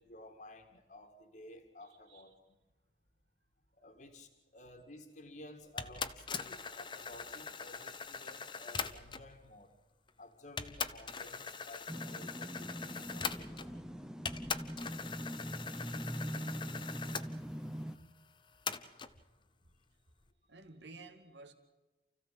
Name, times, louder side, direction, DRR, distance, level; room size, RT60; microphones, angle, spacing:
voice 1, 0.0-2.6 3.7-9.7 10.2-14.0 17.9-18.1 18.4-18.5, left 1 dB, 45° left, 2.0 m, -54 dB
voice 2, 1.8-2.3 20.5-21.5, right 3 dB, 85° right, 2.3 m, -53 dB
sound 1, 5.8-9.3 10.1-10.2 10.6-13.9 14.3-17.3 18.7-19.1, left 6 dB, 25° left, 0.8 m, -41 dB
sound 2, 11.9-18.0, equal, 5° right, 0.7 m, -42 dB
29.0 x 15.5 x 7.6 m
head